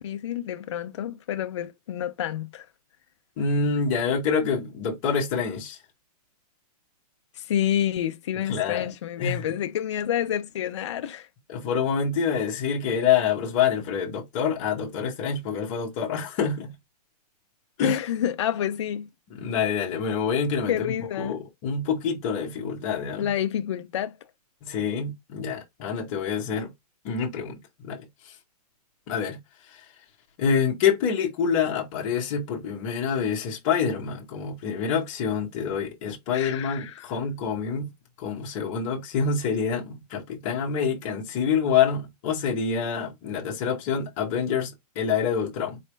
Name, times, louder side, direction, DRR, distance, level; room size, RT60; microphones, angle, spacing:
voice 1, 0.0-2.7 7.4-11.3 17.8-19.1 20.7-21.4 23.2-24.2 36.3-37.1, left 10 dB, 45° left, 0.4 m, -28 dB
voice 2, 3.4-5.8 8.5-8.9 9.2-9.4 11.5-16.7 17.8-18.0 19.3-23.3 24.6-26.7 27.0-28.1 29.1-29.4 29.7-29.8 30.4-37.9 38.2-45.8, left 6 dB, 20° left, 0.8 m, -26 dB
4.2 x 3.2 x 3.1 m
hypercardioid pair, 180°, 21 cm